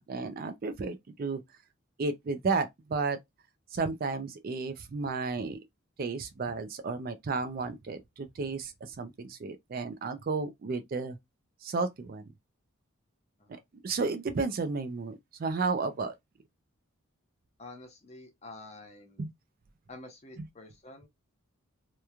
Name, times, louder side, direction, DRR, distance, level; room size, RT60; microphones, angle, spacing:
voice 1, 0.0-1.4 2.0-3.2 3.7-5.6 6.0-11.2 11.6-12.2 13.8-16.1 19.2-19.3 20.4-20.5, right 4 dB, 45° right, 0.3 m, -33 dB
voice 2, 17.6-19.2 19.9-21.1, left 2 dB, 30° left, 0.6 m, -48 dB
2.9 x 2.2 x 2.3 m
head